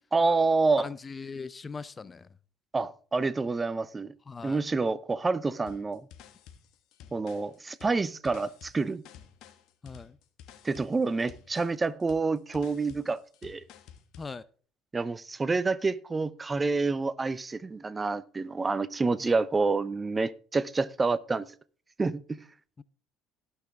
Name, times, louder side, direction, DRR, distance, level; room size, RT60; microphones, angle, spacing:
voice 1, 0.1-0.9 2.7-4.1 4.4-6.1 7.1-9.0 10.6-13.6 14.9-21.5 22.0-22.4, right 3 dB, 25° right, 0.7 m, -28 dB
voice 2, 0.8-2.3 4.3-4.6 9.8-10.2 14.2-14.4 19.2-19.3 22.8-22.9, left 4 dB, 30° left, 0.6 m, -40 dB
sound 1, 5.7-14.3, left 9 dB, 65° left, 1.5 m, -52 dB
18.0 x 6.1 x 3.6 m
hypercardioid pair, 70°, 0 cm